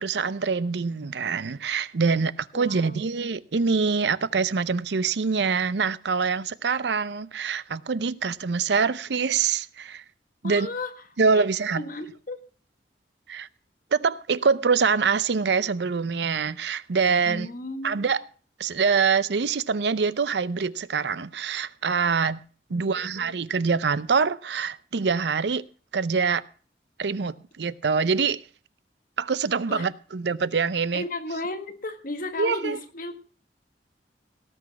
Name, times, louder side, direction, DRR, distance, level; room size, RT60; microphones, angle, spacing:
voice 1, 0.0-10.0 10.4-10.7 11.2-11.8 13.3-13.5 13.9-17.5 17.8-18.2 18.6-22.4 22.7-25.7 25.9-26.4 27.0-28.4 29.2-31.0 32.4-32.8, right 5 dB, 75° right, 0.6 m, -25 dB
voice 2, 2.5-3.0 10.4-10.9 11.3-11.4 11.7-12.4 17.2-18.1 22.7-23.4 29.7-29.9 30.9-33.2, left 2 dB, 50° left, 1.7 m, -34 dB
18.0 x 6.3 x 5.8 m
head